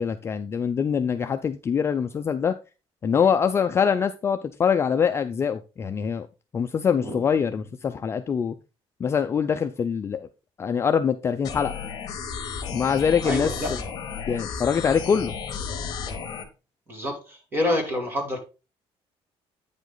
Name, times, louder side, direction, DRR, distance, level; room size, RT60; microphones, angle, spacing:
voice 1, 0.0-2.5 3.0-6.3 6.5-8.6 9.0-10.3 10.6-11.7 12.7-13.8 14.3-15.3, left 7 dB, 25° left, 0.4 m, -24 dB
sound 1, 11.4-16.4, left 6 dB, 40° left, 1.6 m, -33 dB
voice 2, 13.2-13.7 16.9-18.4, left 1 dB, 20° right, 2.3 m, -27 dB
9.0 x 5.2 x 3.8 m
cardioid pair, 165°, 11 cm